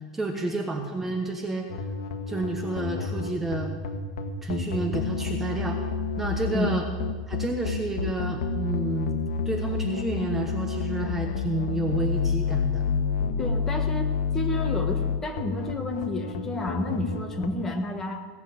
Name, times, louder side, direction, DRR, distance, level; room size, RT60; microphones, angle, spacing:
voice 1, 0.1-1.7 2.3-3.7 4.4-5.8 6.2-6.8 7.3-13.0, right 2 dB, 10° right, 3 dB, 1.1 m, -30 dB
sound 1, 1.7-17.5, left 5 dB, 70° left, 1.4 m, -29 dB
voice 2, 6.5-6.8 13.4-18.2, left 1 dB, 15° left, 4 dB, 1.4 m, -31 dB
17.0 x 7.2 x 8.4 m, 1.4 s
supercardioid pair, 150°, 3 cm